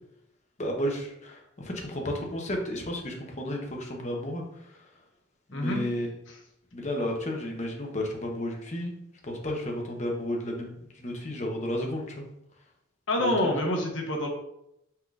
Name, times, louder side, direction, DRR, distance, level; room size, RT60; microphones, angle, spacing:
voice 1, 0.6-4.4 5.5-6.1 6.7-8.9 9.2-12.2 13.2-13.3, left 1 dB, 35° left, 1 dB, 0.8 m, -32 dB
voice 2, 13.1-14.3, left 1 dB, 65° left, 1 dB, 0.9 m, -27 dB
5.6 x 3.6 x 2.4 m, 0.82 s
head